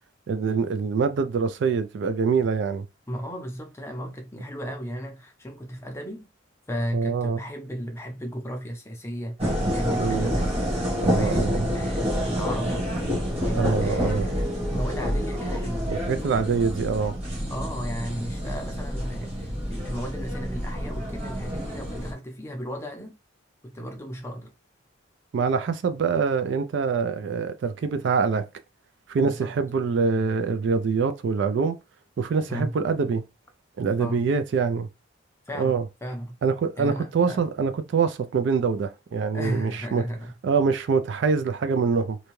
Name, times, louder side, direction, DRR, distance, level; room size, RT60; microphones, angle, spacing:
voice 1, 0.3-2.9 6.9-7.4 10.0-10.3 11.0-11.6 13.6-14.2 15.9-17.1 25.3-28.5 29.1-31.8 32.2-33.2 33.8-34.9 35.6-35.8 36.4-40.0 40.4-42.2, right 5 dB, 60° right, 0.3 m, -24 dB
voice 2, 3.1-6.3 6.7-9.4 9.7-10.5 11.2-12.9 13.4-14.4 14.7-15.9 17.5-23.2 23.6-24.5 29.2-29.6 32.5-32.8 34.0-34.3 35.5-36.4 36.8-37.4 39.3-40.3, equal, 15° left, 0.5 m, -34 dB
sound 1, 9.4-22.1, equal, 30° right, 1.2 m, -28 dB
2.6 x 2.2 x 3.0 m
head